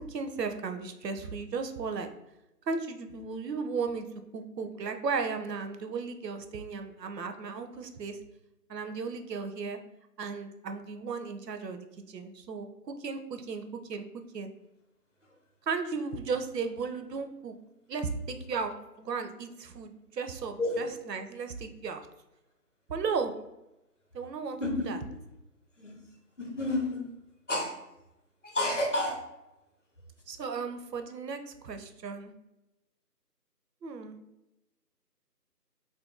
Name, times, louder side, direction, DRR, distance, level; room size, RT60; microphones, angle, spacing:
voice 1, 0.1-2.1 2.7-4.1 4.3-8.2 8.7-9.8 10.2-14.0 14.3-14.5 15.7-17.5 17.9-22.0 22.9-23.3 24.1-24.6 24.9-25.0 30.3-32.3 33.8-34.2, right 5 dB, 80° right, 7 dB, 0.6 m, -35 dB
voice 2, 20.6-20.9 24.6-24.9 25.8-26.0 26.4-27.1 27.5-27.7 28.4-29.2, left 1 dB, 50° left, 1 dB, 0.7 m, -30 dB
2.6 x 2.6 x 3.6 m, 0.93 s
figure-of-eight pair, 175°, 49 cm